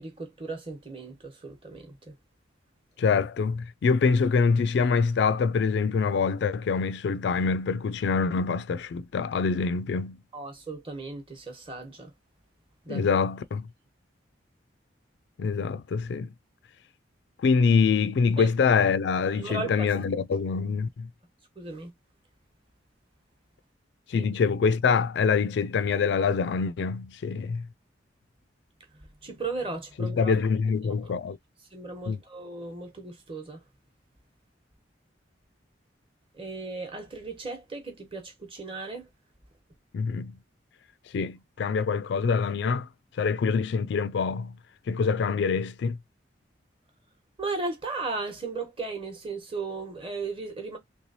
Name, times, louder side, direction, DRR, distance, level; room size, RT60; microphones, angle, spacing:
voice 1, 0.0-2.2 10.3-12.1 12.8-13.2 18.4-18.5 19.3-20.0 21.6-21.9 24.1-24.3 28.9-30.4 30.8-31.1 31.7-33.6 36.3-39.1 47.4-50.8, right 3 dB, 30° right, 1.0 m, -36 dB
voice 2, 3.0-10.2 12.9-13.7 15.4-16.3 17.4-21.1 24.1-27.7 30.0-31.4 32.1-32.2 39.9-40.3 41.1-42.9 43.2-44.5 44.9-46.0, left 5 dB, 65° left, 0.3 m, -25 dB
3.2 x 3.1 x 2.7 m
head